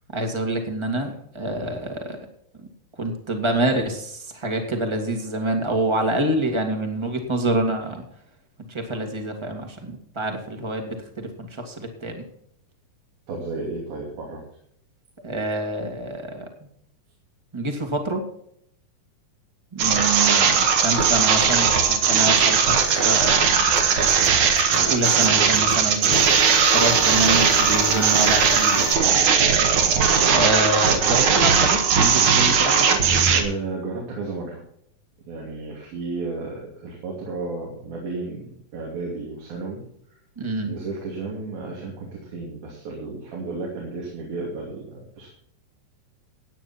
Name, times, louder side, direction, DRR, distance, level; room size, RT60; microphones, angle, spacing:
voice 1, 0.1-2.2 3.0-8.0 8.7-12.2 15.2-16.5 17.5-18.2 19.7-23.5 24.7-26.2 26.7-29.2 30.3-33.0 40.3-40.7, right 1 dB, 10° right, 4 dB, 1.3 m, -27 dB
voice 2, 13.3-14.4 33.3-34.6 35.3-39.8 40.7-45.3, right 3 dB, 80° right, -2 dB, 4.6 m, -33 dB
sound 1, 19.8-33.4, right 6 dB, 60° right, 2.7 m, -18 dB
sound 2, 23.8-28.9, left 6 dB, 85° left, 3.8 m, -33 dB
16.0 x 9.3 x 4.4 m, 0.70 s
omnidirectional pair, 4.2 m